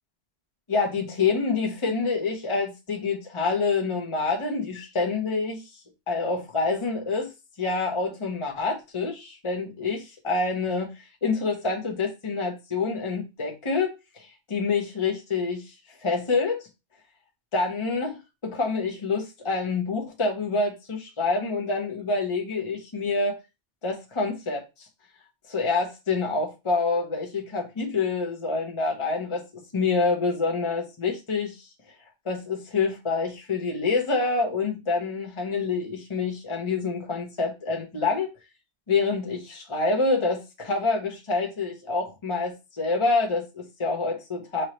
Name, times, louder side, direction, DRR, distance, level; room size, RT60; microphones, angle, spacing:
voice 1, 0.7-5.7 6.1-7.3 7.6-10.9 11.2-15.7 16.0-16.7 17.5-18.2 18.4-23.4 23.8-24.6 25.5-31.7 32.2-38.3 38.9-44.6, left 4 dB, 30° left, 0.9 m, -27 dB
5.3 x 3.0 x 3.0 m
omnidirectional pair, 1.2 m